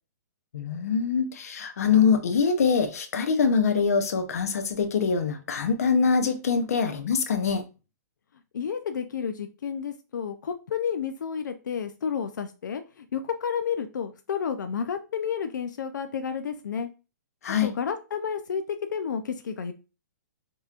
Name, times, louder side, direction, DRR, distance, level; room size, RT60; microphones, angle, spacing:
voice 1, 0.5-7.6 17.4-17.7, left 5 dB, 55° left, 0.8 m, -24 dB
voice 2, 8.5-16.9 17.6-19.7, left 7 dB, 90° left, 0.5 m, -31 dB
5.4 x 2.9 x 2.4 m
hypercardioid pair, 180°, 10 cm